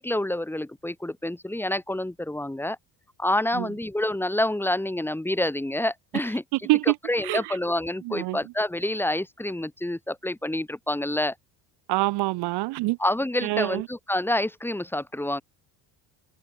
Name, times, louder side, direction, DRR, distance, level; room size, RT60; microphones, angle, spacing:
voice 1, 0.0-2.8 3.2-6.4 7.1-11.3 13.0-15.4, left 1 dB, 5° left, 3.3 m, -27 dB
voice 2, 6.6-7.0 7.2-7.6 8.1-8.4 11.9-13.0 13.4-13.9, right 20 dB, 80° right, 1.8 m, -25 dB
cardioid pair, 135°, 40 cm